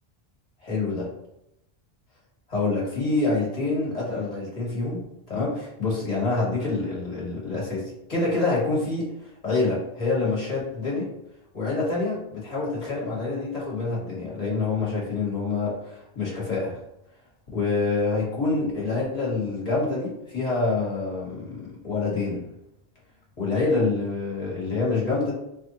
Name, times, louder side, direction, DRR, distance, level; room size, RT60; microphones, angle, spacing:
voice 1, 0.6-1.1 2.5-9.1 9.4-11.0 11.5-16.7 17.5-22.4 23.4-25.3, left 3 dB, 40° left, -6 dB, 1.6 m, -26 dB
3.3 x 2.6 x 3.8 m, 0.83 s
omnidirectional pair, 1.0 m